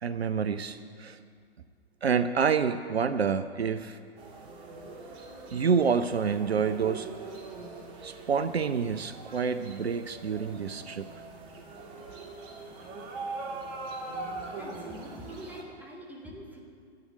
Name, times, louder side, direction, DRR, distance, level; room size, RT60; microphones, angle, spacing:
voice 1, 0.0-1.2 2.0-4.0 5.5-7.1 8.0-11.1, right 6 dB, 70° right, 12 dB, 0.6 m, -28 dB
sound 1, 4.2-15.6, right 3 dB, 30° right, 1.7 m, -42 dB
voice 2, 14.3-16.6, equal, 5° right, -3 dB, 2.1 m, -45 dB
11.5 x 8.6 x 9.1 m, 2.2 s
figure-of-eight pair, 115°, 32 cm